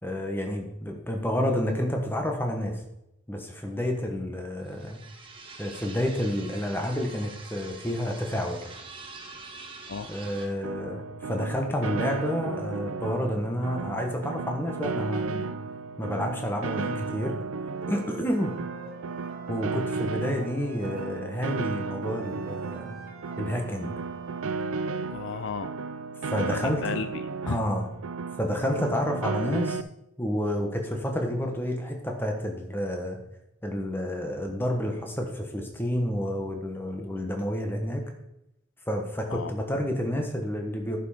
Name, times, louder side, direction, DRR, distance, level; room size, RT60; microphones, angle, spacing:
voice 1, 0.0-2.8 3.3-5.0 5.6-8.6 10.1-15.5 16.0-17.4 17.9-18.6 19.5-23.0 23.4-24.0 26.3-26.8 27.5-27.9 28.4-29.8 30.2-33.2 33.6-38.1 38.9-41.0, equal, 10° left, 2 dB, 1.3 m, -29 dB
sound 1, 4.6-10.5, right 3 dB, 25° right, 1.2 m, -45 dB
Piano, 10.6-29.8, right 4 dB, 80° right, 0.5 m, -34 dB
Wind instrument woodwind instrument, 17.7-21.2 22.0-25.8, right 2 dB, 45° right, 1.0 m, -46 dB
voice 2, 25.1-25.7 26.5-27.6 39.3-39.5, left 5 dB, 60° left, 11 dB, 0.4 m, -34 dB
10.5 x 5.9 x 4.9 m, 0.85 s
head